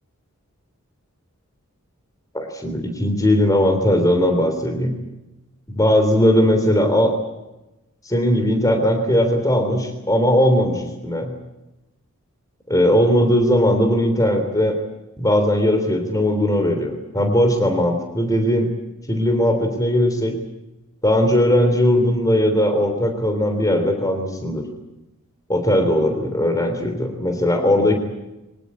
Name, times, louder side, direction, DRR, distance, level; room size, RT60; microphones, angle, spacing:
voice 1, 2.3-4.9 5.7-7.1 8.0-11.3 12.7-14.7 15.2-18.7 19.1-20.3 21.0-24.6 25.5-28.0, left 1 dB, 15° left, 5 dB, 3.4 m, -18 dB
24.0 x 18.5 x 9.6 m, 0.98 s
head